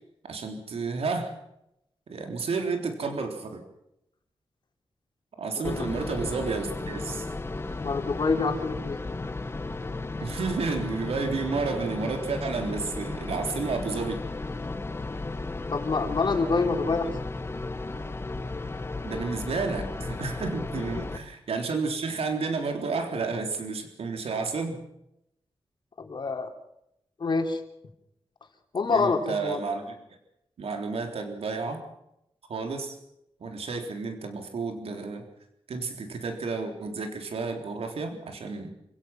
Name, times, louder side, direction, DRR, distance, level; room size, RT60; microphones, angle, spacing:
voice 1, 0.3-1.3 2.1-3.6 5.4-7.3 10.2-14.2 19.0-24.8 28.9-30.0 30.6-31.8 32.5-33.0 33.4-35.2 35.7-38.7, right 4 dB, 85° right, 4 dB, 3.7 m, -31 dB
sound 1, 5.6-21.2, left 3 dB, 25° left, 1.4 m, -34 dB
voice 2, 7.8-9.0 15.7-17.1 26.0-26.5 27.2-27.6 28.7-29.6, left 4 dB, 50° left, 4 dB, 3.5 m, -26 dB
28.5 x 17.0 x 6.0 m, 0.81 s
wide cardioid pair, 145°, 10 cm